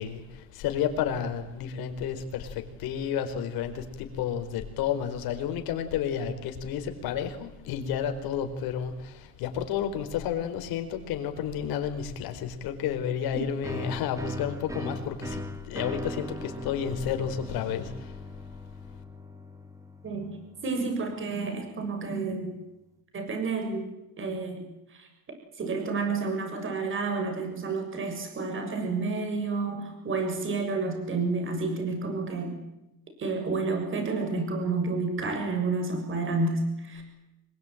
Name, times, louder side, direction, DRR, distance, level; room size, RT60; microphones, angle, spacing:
voice 1, 0.0-18.2, left 8 dB, 85° left, 7 dB, 4.6 m, -31 dB
sound 1, 13.6-21.1, left 1 dB, 10° right, 2.4 m, -40 dB
voice 2, 20.6-22.6 23.1-23.8 24.2-24.7 24.9-25.1 25.6-32.6 33.2-37.0, right 3 dB, 35° right, 5 dB, 7.1 m, -30 dB
26.0 x 22.5 x 9.2 m, 0.92 s
cardioid pair, 155°, 35 cm